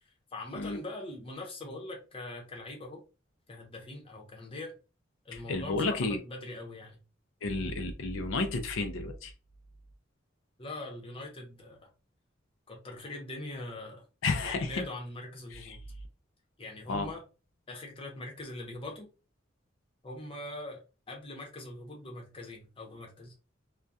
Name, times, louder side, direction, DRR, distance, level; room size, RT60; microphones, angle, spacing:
voice 1, 0.3-3.0 3.5-4.7 5.2-7.0 7.6-7.8 10.6-11.9 12.7-14.0 14.4-15.8 16.6-17.2 17.7-19.1 20.0-23.3, left 2 dB, 25° left, 0.7 m, -42 dB
voice 2, 5.3-6.2 7.4-9.3 14.2-14.8 15.5-15.8 16.9-17.1, left 3 dB, 75° left, 0.4 m, -32 dB
2.3 x 2.2 x 2.5 m
head